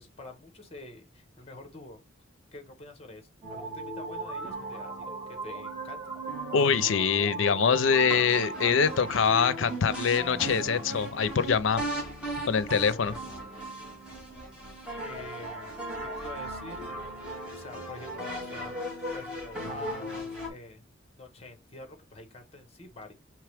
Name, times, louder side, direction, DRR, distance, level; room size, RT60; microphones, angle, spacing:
voice 1, 0.0-2.0 2.5-6.1 12.7-13.4 15.0-15.8 16.2-16.8 17.5-18.8 19.1-20.8 21.1-23.1, left 2 dB, 30° left, 1.1 m, -46 dB
sound 1, 3.4-20.5, right 1 dB, 5° right, 2.1 m, -37 dB
voice 2, 6.5-11.8 12.5-13.1, left 6 dB, 80° left, 0.5 m, -24 dB
4.7 x 3.2 x 3.4 m
head